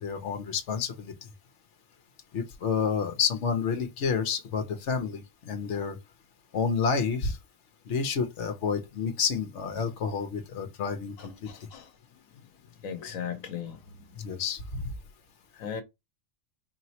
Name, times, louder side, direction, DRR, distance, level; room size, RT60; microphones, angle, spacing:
voice 1, 0.0-1.1 2.3-6.0 6.5-7.4 7.9-11.5 14.2-14.8, left 6 dB, 65° left, 1.2 m, -29 dB
voice 2, 11.2-11.9 12.8-13.8 15.6-15.8, left 7 dB, 85° left, 1.3 m, -37 dB
4.7 x 3.0 x 2.9 m
omnidirectional pair, 1.3 m